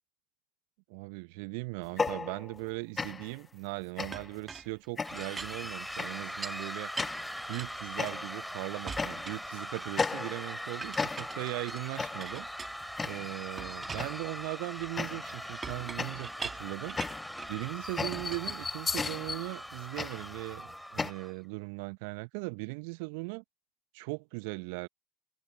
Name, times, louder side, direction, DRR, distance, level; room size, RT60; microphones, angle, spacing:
voice 1, 0.9-6.9 7.5-12.5 13.0-17.0 17.5-23.4 23.9-24.9, right 30 dB, 65° right, 1.0 m, -39 dB
sound 1, 1.8-2.7 3.0-3.4 4.0-4.4 5.0-5.4 6.0-6.3 7.0-7.4 8.0-8.5 9.0-9.5 10.0-10.6 11.0-11.5 12.0-12.4 13.0-13.4 14.0-14.3 15.0-15.5 16.0-21.1, left 4 dB, 25° left, 0.9 m, -36 dB
Chink clink, 4.1-6.7 7.0-8.5 8.9-10.1 10.8-13.1 13.6-17.6 18.1-19.3, right 5 dB, 30° right, 1.6 m, -45 dB
sound 2, 5.0-21.3, equal, ahead, 4.7 m, -41 dB
figure-of-eight pair, 60°, 0 cm